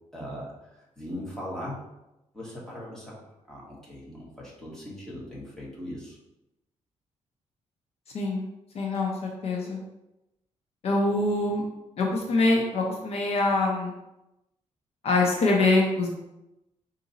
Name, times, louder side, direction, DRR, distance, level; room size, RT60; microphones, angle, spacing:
voice 1, 0.1-1.8 2.3-6.2, equal, 5° left, -6 dB, 1.2 m, -39 dB
voice 2, 8.7-9.8 10.8-11.6 12.0-13.9 15.0-16.1, left 2 dB, 55° left, 0 dB, 0.7 m, -24 dB
4.8 x 2.7 x 3.9 m, 0.94 s
cardioid pair, 160°, 12 cm